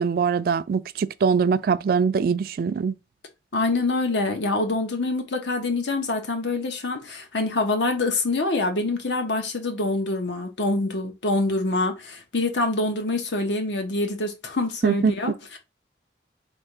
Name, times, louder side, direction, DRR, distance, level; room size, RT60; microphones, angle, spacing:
voice 1, 0.0-2.9 14.8-15.1, right 5 dB, 55° right, 0.3 m, -22 dB
voice 2, 3.5-15.6, left 2 dB, 85° left, 1.1 m, -25 dB
3.6 x 2.7 x 4.6 m
head